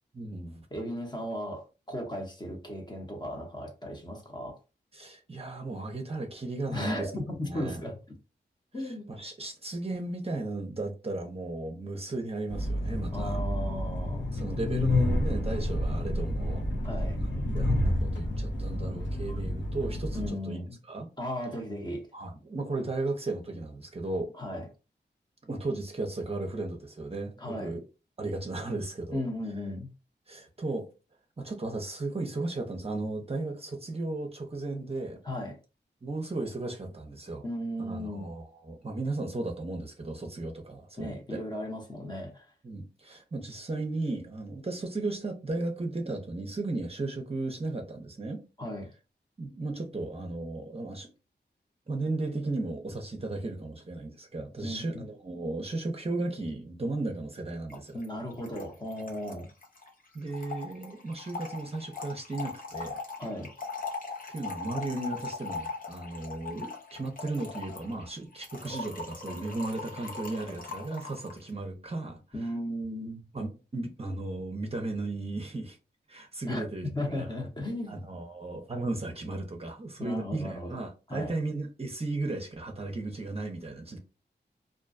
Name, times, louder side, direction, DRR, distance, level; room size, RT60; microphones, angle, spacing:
voice 1, 0.1-0.7 4.9-7.1 7.5-7.8 8.8-13.4 14.3-16.6 17.2-20.6 20.9-21.1 22.1-24.3 25.5-27.8 28.2-29.2 30.3-30.9 31.4-35.2 36.0-37.4 37.9-41.4 42.6-48.4 49.4-51.1 51.9-58.0 60.1-63.0 64.3-72.2 73.3-75.8 76.1-77.3 77.9-84.0, right 2 dB, 35° right, 0.6 m, -35 dB
voice 2, 0.7-4.6 6.7-8.0 8.7-9.1 13.1-14.3 16.8-17.2 20.1-20.8 21.2-22.1 24.4-24.7 27.4-27.8 29.1-29.9 35.2-35.6 37.4-38.3 41.0-42.5 48.6-48.9 54.6-55.1 57.9-59.5 63.2-63.5 72.3-73.2 76.5-76.6 76.9-78.0 80.0-80.8 81.1-81.3, left 1 dB, 25° left, 0.8 m, -36 dB
Train, 12.5-20.3, left 1 dB, 85° left, 0.8 m, -29 dB
Trickle dribble / Fill (with liquid), 57.7-57.8 58.0-58.1 58.3-71.4, left 4 dB, 50° left, 0.7 m, -40 dB
2.5 x 2.2 x 2.5 m
wide cardioid pair, 75°, 18 cm